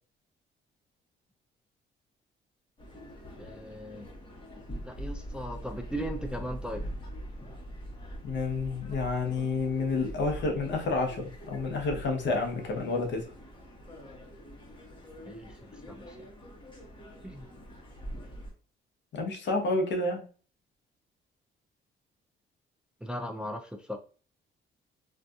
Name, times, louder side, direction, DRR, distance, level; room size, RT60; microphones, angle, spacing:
sound 1, 2.8-18.5, equal, 25° left, 1.0 m, -43 dB
voice 1, 3.4-4.1 4.8-6.8 15.2-16.2 17.2-17.5 23.0-24.0, equal, 5° right, 4 dB, 0.3 m, -38 dB
voice 2, 8.2-13.3 19.1-20.3, left 3 dB, 65° left, 2 dB, 0.8 m, -29 dB
2.6 x 2.4 x 2.3 m, 0.39 s
cardioid pair, 90°, 20 cm